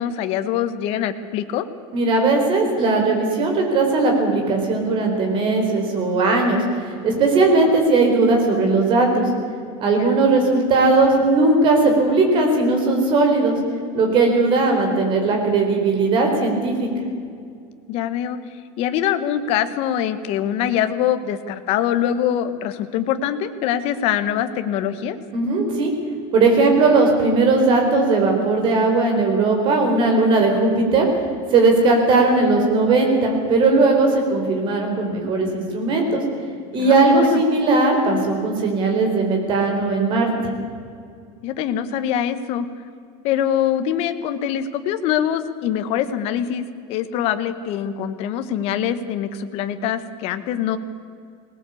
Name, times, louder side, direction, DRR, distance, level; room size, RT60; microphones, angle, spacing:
voice 1, 0.0-1.6 9.8-10.2 14.7-15.1 17.9-18.4 18.8-25.2 36.7-37.4 41.4-42.7 43.2-50.8, left 10 dB, 40° left, 9 dB, 1.2 m, -24 dB
voice 2, 1.9-9.3 9.8-13.6 13.9-16.9 25.3-25.9 26.3-31.1 31.5-36.2 36.7-40.3, right 3 dB, 30° right, 2 dB, 4.3 m, -18 dB
20.0 x 18.5 x 8.5 m, 2.3 s
supercardioid pair, 175°, 16 cm